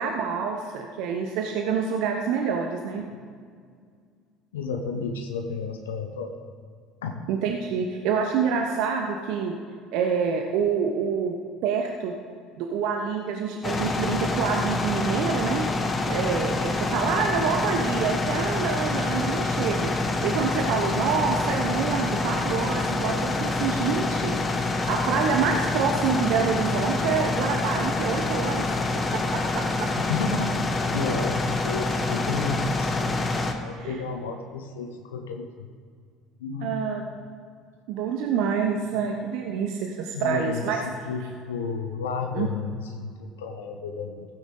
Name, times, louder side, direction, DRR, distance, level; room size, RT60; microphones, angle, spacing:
voice 1, 0.0-3.0 7.3-9.6 9.9-11.4 11.6-12.1 12.6-15.7 16.1-19.9 20.2-28.8 29.3-29.4 29.8-29.9 33.7-34.0 36.6-37.1 37.9-40.8 42.3-42.5, right 6 dB, 65° right, 3 dB, 0.9 m, -27 dB
voice 2, 4.5-6.3 7.0-7.2 30.0-33.1 33.4-35.7 36.4-36.7 38.7-38.8 40.1-44.3, left 4 dB, 85° left, 5 dB, 0.8 m, -32 dB
sound 1, 13.6-33.5, left 3 dB, 30° left, 1.3 m, -26 dB
16.0 x 9.2 x 3.8 m, 2.1 s
hypercardioid pair, 65°, 0 cm